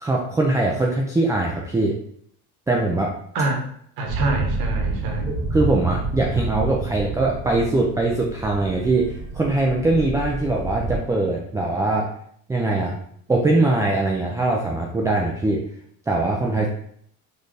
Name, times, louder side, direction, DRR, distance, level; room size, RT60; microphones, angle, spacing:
voice 1, 0.0-1.9 2.7-3.1 5.3-9.1 9.3-12.1 12.5-13.0 13.3-15.6 16.1-16.7, right 2 dB, 10° right, -1 dB, 0.3 m, -21 dB
sound 1, 4.0-11.0, right 3 dB, 35° right, 1.2 m, -29 dB
voice 2, 4.0-5.3, right 2 dB, 65° right, 2 dB, 1.1 m, -25 dB
4.0 x 2.6 x 3.2 m, 0.66 s
supercardioid pair, 105°, 39 cm